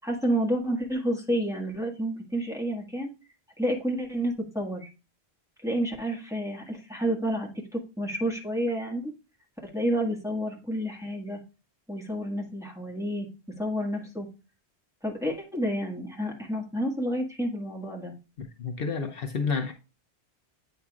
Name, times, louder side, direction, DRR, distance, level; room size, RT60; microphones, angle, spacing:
voice 1, 0.0-3.1 3.6-4.9 5.6-9.1 9.7-11.4 11.9-13.3 13.6-14.3 15.0-18.1, equal, 5° right, 1.6 m, -30 dB
voice 2, 18.4-19.7, left 5 dB, 65° left, 0.9 m, -30 dB
8.6 x 5.2 x 2.4 m
omnidirectional pair, 1.1 m